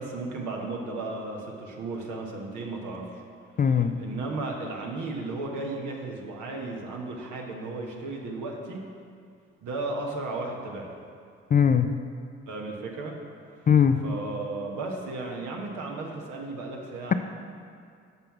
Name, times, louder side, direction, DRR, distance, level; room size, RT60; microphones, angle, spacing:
voice 1, 0.0-3.2 3.7-8.8 9.6-10.9 12.5-13.2 14.0-17.1, right 2 dB, 65° right, 0 dB, 1.3 m, -34 dB
voice 2, 3.6-3.9 11.5-11.9 13.7-14.0, left 7 dB, 25° left, 9 dB, 0.4 m, -20 dB
6.8 x 5.7 x 5.9 m, 2.3 s
hypercardioid pair, 40°, 33 cm